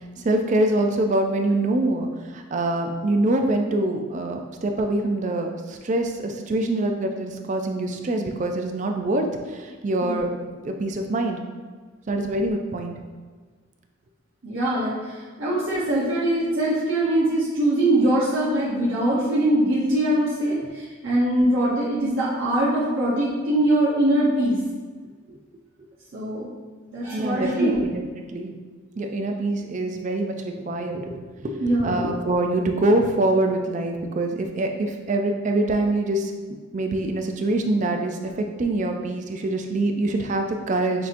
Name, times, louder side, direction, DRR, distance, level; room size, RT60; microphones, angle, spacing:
voice 1, 0.2-10.3 10.6-11.4 12.1-12.9 20.6-20.7 25.3-25.4 27.1-28.0 28.3-28.5 29.0-36.3 36.7-41.1, right 2 dB, 35° right, 4 dB, 0.3 m, -24 dB
voice 2, 14.4-24.6 26.1-26.5 26.9-27.8 31.6-32.1, right 1 dB, 70° right, -8 dB, 0.9 m, -22 dB
6.1 x 2.8 x 2.5 m, 1.4 s
head